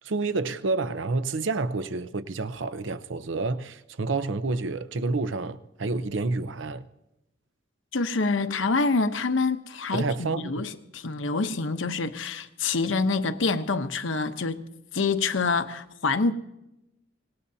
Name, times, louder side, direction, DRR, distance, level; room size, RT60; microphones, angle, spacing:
voice 1, 0.0-6.8 9.9-10.6, right 3 dB, 75° right, 0.7 m, -29 dB
voice 2, 7.9-16.3, left 3 dB, 85° left, 0.9 m, -26 dB
25.5 x 19.0 x 2.8 m
head